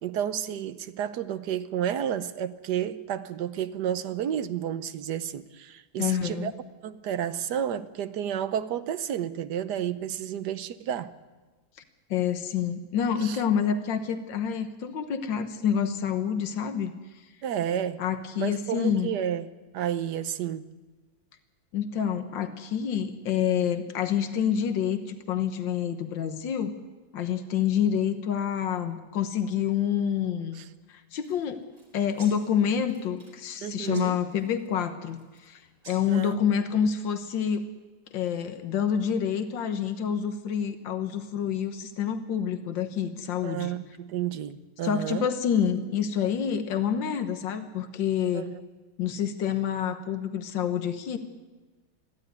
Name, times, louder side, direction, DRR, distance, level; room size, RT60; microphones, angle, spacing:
voice 1, 0.0-6.5 6.8-11.1 13.2-13.4 17.4-18.0 18.4-19.5 19.7-20.6 30.6-30.7 33.6-34.2 36.1-36.4 43.4-45.3 48.3-48.6, right 10 dB, 70° right, 1.4 m, -31 dB
voice 2, 6.0-6.5 12.1-16.9 18.0-19.1 21.7-26.7 27.1-30.6 30.9-31.6 31.9-37.6 38.1-43.7 44.8-48.5 49.0-51.2, left 8 dB, 90° left, 1.8 m, -28 dB
sound 1, 31.1-36.3, right 2 dB, 85° right, 5.6 m, -54 dB
22.0 x 15.0 x 9.4 m
omnidirectional pair, 2.0 m